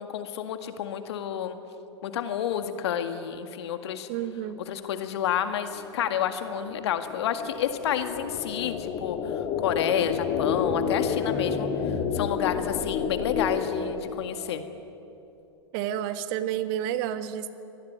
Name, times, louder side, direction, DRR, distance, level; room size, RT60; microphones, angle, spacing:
voice 1, 0.0-1.6 2.0-4.1 4.7-14.6, left 9 dB, 60° left, 8 dB, 1.9 m, -30 dB
voice 2, 4.1-4.6 15.7-17.5, right 10 dB, 45° right, 10 dB, 1.6 m, -30 dB
sound 1, 5.8-14.7, left 6 dB, 40° left, 2.5 m, -30 dB
25.0 x 20.0 x 9.5 m, 2.9 s
figure-of-eight pair, 95°, 16 cm